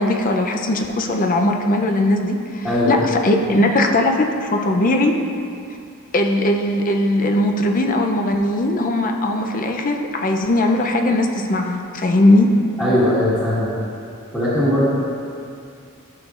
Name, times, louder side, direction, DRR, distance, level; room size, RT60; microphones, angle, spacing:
voice 1, 0.0-5.2 6.1-12.5, left 1 dB, 40° left, 3 dB, 0.5 m, -19 dB
voice 2, 2.6-3.0 12.8-13.7 14.3-14.9, left 1 dB, 10° left, -13 dB, 1.5 m, -19 dB
11.5 x 6.5 x 2.4 m, 2.4 s
head